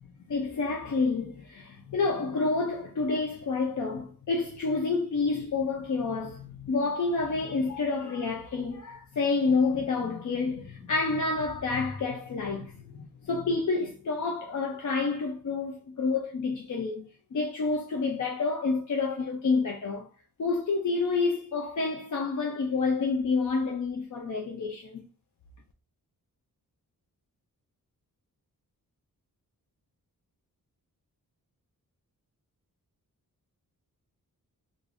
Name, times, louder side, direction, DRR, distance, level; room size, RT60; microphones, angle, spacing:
voice 1, 0.3-20.1 20.4-25.0, left 4 dB, 55° left, 0.5 m, -29 dB
4.8 x 2.6 x 2.5 m
wide cardioid pair, 180°, 36 cm